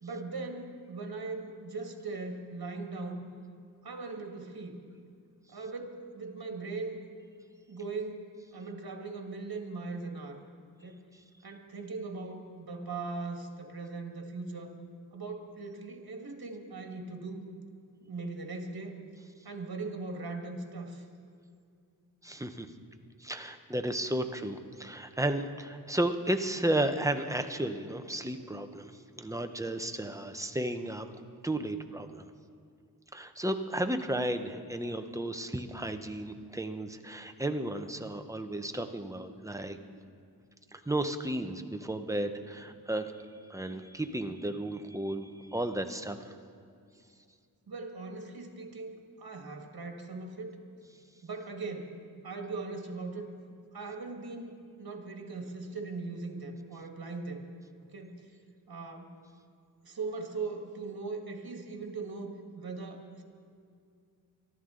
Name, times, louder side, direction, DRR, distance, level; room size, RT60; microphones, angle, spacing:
voice 1, 0.0-3.3 3.8-4.8 5.5-7.0 7.7-10.4 10.8-11.0 11.4-14.8 15.1-17.5 18.0-19.0 19.5-21.1 47.7-50.6 51.2-53.3 53.7-57.4 57.8-58.3 58.7-59.2 59.8-63.2, right 3 dB, 70° right, 4 dB, 1.8 m, -39 dB
voice 2, 22.2-22.7 23.2-31.1 31.4-32.3 33.1-39.8 40.7-43.1 43.5-46.3, right 1 dB, 10° right, 7 dB, 0.8 m, -33 dB
23.0 x 13.0 x 3.9 m, 2.3 s
wide cardioid pair, 80°, 38 cm